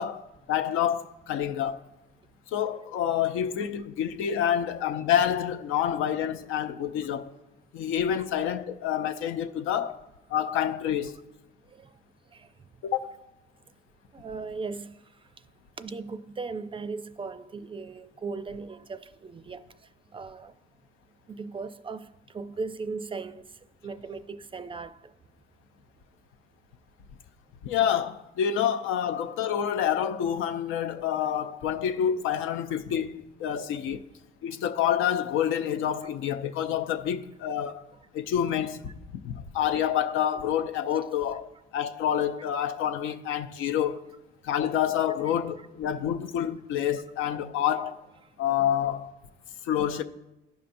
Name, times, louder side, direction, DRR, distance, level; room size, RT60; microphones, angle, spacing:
voice 1, 0.0-1.8 2.5-7.3 7.7-10.0 10.3-11.2 12.8-13.2 27.6-34.1 34.4-37.9 38.1-44.0 44.4-48.0 48.4-49.1 49.6-50.0, left 9 dB, 85° left, 0.5 m, -28 dB
voice 2, 14.1-14.9 15.8-19.6 20.1-20.5 21.3-22.1 22.3-23.5 23.8-25.0 45.6-45.7, right 4 dB, 25° right, 0.4 m, -37 dB
15.0 x 5.5 x 2.6 m
cardioid pair, 90°, 20 cm